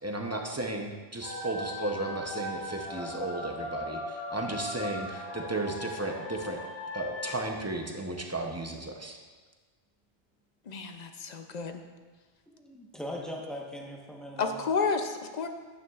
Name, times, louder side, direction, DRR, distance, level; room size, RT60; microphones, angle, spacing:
voice 1, 0.0-6.6 6.9-9.2, right 2 dB, 20° right, 2 dB, 0.6 m, -34 dB
sound 1, 1.2-7.5, left 2 dB, 80° left, 1.2 m, -38 dB
voice 2, 10.6-11.8 14.4-15.5, left 5 dB, 50° left, 7 dB, 0.6 m, -31 dB
voice 3, 12.5-14.6, left 1 dB, ahead, -1 dB, 1.0 m, -40 dB
9.4 x 9.2 x 2.4 m, 1.4 s
omnidirectional pair, 1.0 m